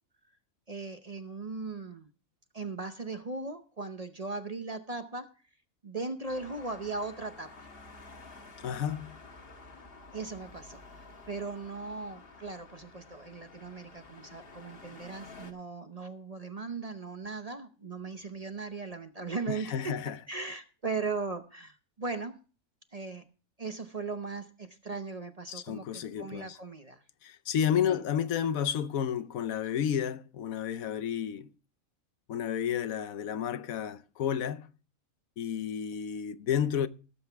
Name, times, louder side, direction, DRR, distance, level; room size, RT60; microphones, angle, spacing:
voice 1, 0.7-2.1 2.5-5.3 5.8-7.7 10.1-20.0 20.3-22.4 22.9-23.2 23.6-27.0 27.9-28.0, right 4 dB, 35° right, 0.7 m, -38 dB
Traffic noise roadway noise, 6.2-15.5, left 3 dB, 45° left, 1.6 m, -51 dB
voice 2, 8.6-9.1 19.5-20.2 25.5-26.6 27.2-31.5 32.3-34.7 35.4-36.9, left 8 dB, 80° left, 1.2 m, -31 dB
17.0 x 7.9 x 3.4 m
omnidirectional pair, 1.5 m